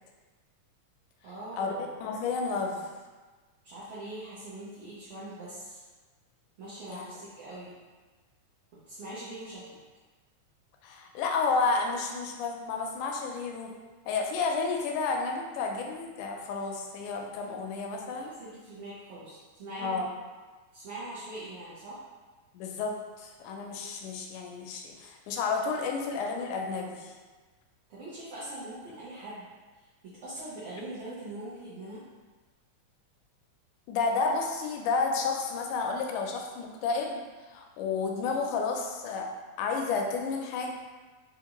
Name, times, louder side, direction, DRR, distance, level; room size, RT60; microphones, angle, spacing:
voice 1, 1.2-1.8 3.6-5.8 6.6-7.7 8.9-9.6 18.1-20.0 20.7-22.0 27.9-29.4 30.0-32.0, right 1 dB, 70° right, -11 dB, 1.3 m, -42 dB
voice 2, 2.0-2.9 6.9-7.0 10.8-13.8 14.1-18.3 19.8-20.1 22.5-27.1 33.9-37.2 37.5-39.3 39.6-40.7, left 4 dB, 85° left, 2 dB, 2.0 m, -31 dB
5.1 x 2.4 x 2.9 m, 1.3 s
omnidirectional pair, 3.5 m